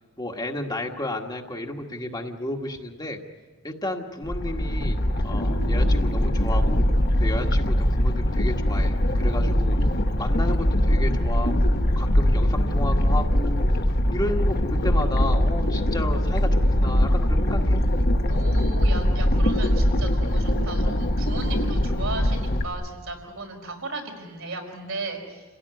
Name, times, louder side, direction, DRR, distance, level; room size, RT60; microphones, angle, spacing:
voice 1, 0.2-3.2 3.6-5.0 5.2-6.9 7.2-9.8 10.2-13.7 14.1-17.8, left 1 dB, 20° left, 2 dB, 1.6 m, -32 dB
sound 1, 4.2-22.7, equal, 45° left, 1.4 m, -22 dB
voice 2, 18.3-25.4, right 3 dB, 80° right, 1 dB, 5.3 m, -35 dB
29.0 x 17.0 x 9.7 m, 1.4 s
head